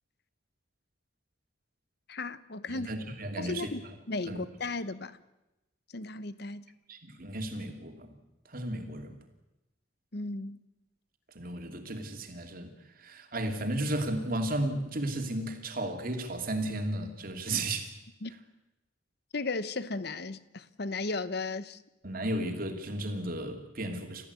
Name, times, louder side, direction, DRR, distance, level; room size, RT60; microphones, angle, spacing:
voice 1, 2.1-2.9 3.4-3.8 4.1-5.2 5.9-6.6 10.1-10.6 18.2-18.3 19.3-21.8, left 3 dB, 55° left, 1.0 m, -35 dB
voice 2, 2.7-3.7 4.3-4.4 6.9-8.2 8.5-9.2 11.3-12.7 13.0-17.9 22.0-24.3, right 1 dB, 50° right, 2.9 m, -34 dB
29.5 x 14.5 x 8.3 m
head